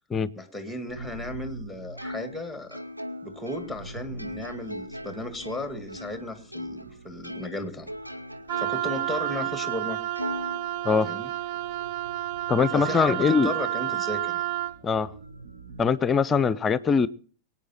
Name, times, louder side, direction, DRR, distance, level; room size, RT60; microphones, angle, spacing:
voice 1, 0.4-2.8 3.2-7.9 8.6-10.0 11.0-11.3 12.7-14.4, left 1 dB, ahead, 2.0 m, -35 dB
sound 1, 0.9-15.9, right 3 dB, 65° right, 1.3 m, -46 dB
Plucked string instrument, 2.0-6.9 7.2-9.0 9.4-9.5 10.2-11.3, left 1 dB, 90° right, 0.9 m, -39 dB
Wind instrument woodwind instrument, 8.5-14.8, right 14 dB, 45° right, 0.5 m, -30 dB
voice 2, 12.5-13.5 14.8-15.1 15.8-17.1, left 5 dB, 20° left, 0.6 m, -22 dB
23.0 x 8.9 x 4.2 m
figure-of-eight pair, 90°, 0 cm